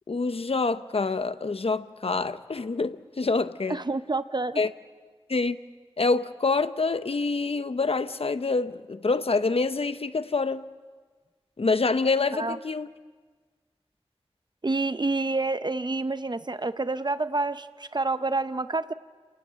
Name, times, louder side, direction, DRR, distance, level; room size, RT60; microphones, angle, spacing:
voice 1, 0.1-3.8 4.6-4.7 5.3-5.6 6.0-10.7 11.6-12.9, left 3 dB, 70° left, 0.8 m, -26 dB
voice 2, 3.7-4.6 12.3-12.6 14.6-18.9, right 3 dB, 45° right, 0.6 m, -28 dB
29.0 x 18.5 x 7.4 m
wide cardioid pair, 65°, 10 cm